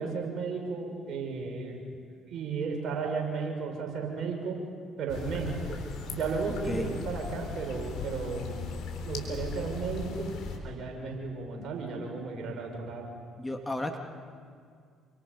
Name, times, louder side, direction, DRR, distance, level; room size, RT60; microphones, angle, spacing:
voice 1, 0.0-1.8 2.3-4.6 5.0-5.8 6.1-8.6 9.0-10.3 10.6-13.1, right 4 dB, 55° right, 1 dB, 5.9 m, -34 dB
sound 1, 5.1-10.6, left 4 dB, 65° left, 3.8 m, -38 dB
voice 2, 6.6-7.0 13.4-14.0, left 1 dB, 15° left, 4 dB, 2.2 m, -33 dB
28.5 x 25.0 x 5.4 m, 2.1 s
hypercardioid pair, 50°, 0 cm